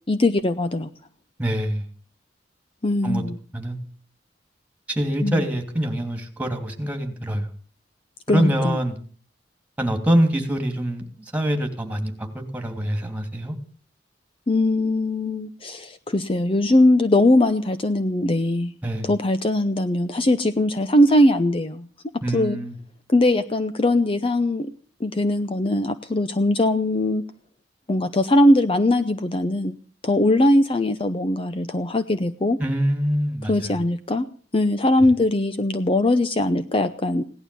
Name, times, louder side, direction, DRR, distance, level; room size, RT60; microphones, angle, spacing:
voice 1, 0.1-0.9 2.8-3.4 5.2-5.4 8.3-8.8 14.5-18.7 19.0-21.9 22.3-22.6 23.1-24.7 25.0-27.2 27.9-29.8 30.0-32.6 33.5-34.3 34.5-37.2, left 1 dB, 30° left, 11 dB, 0.7 m, -20 dB
voice 2, 1.4-1.8 3.0-3.2 3.5-3.8 4.9-7.5 8.3-9.0 9.8-13.6 18.8-19.1 22.2-22.8 32.6-33.8 35.0-35.1, equal, 10° right, 5 dB, 2.8 m, -24 dB
17.5 x 11.5 x 7.0 m, 0.42 s
head